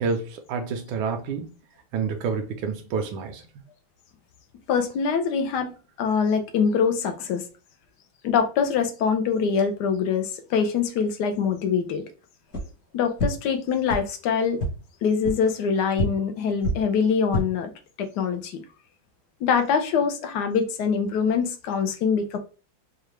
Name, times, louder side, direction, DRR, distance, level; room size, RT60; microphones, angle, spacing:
voice 1, 0.0-1.5 1.9-3.4, right 5 dB, 80° right, 1.3 m, -28 dB
voice 2, 4.7-7.4 8.2-12.0 12.9-14.6 15.0-17.7 18.0-18.6 19.4-22.4, left 6 dB, 70° left, 1.1 m, -24 dB
sound 1, 12.5-12.6 13.2-13.3 13.9-14.0 14.6-14.7 15.2-15.3 15.9-16.0 16.6-16.7 17.2-17.4, equal, 50° left, 1.9 m, -25 dB
4.7 x 2.3 x 3.2 m
omnidirectional pair, 2.2 m